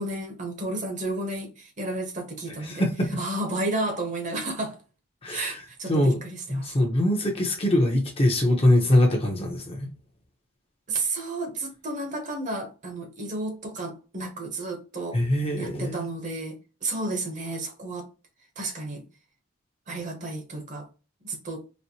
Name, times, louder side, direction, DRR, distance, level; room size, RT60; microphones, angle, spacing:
voice 1, 0.0-2.9 3.2-4.8 5.3-6.7 10.9-15.2 15.6-18.1 18.6-19.0 19.9-20.9 21.2-21.6, right 2 dB, 35° right, 0.8 m, -32 dB
voice 2, 2.6-3.2 5.2-5.6 5.9-6.2 6.5-9.9 15.1-16.1, left 1 dB, 25° left, 0.7 m, -23 dB
4.2 x 2.0 x 2.7 m
head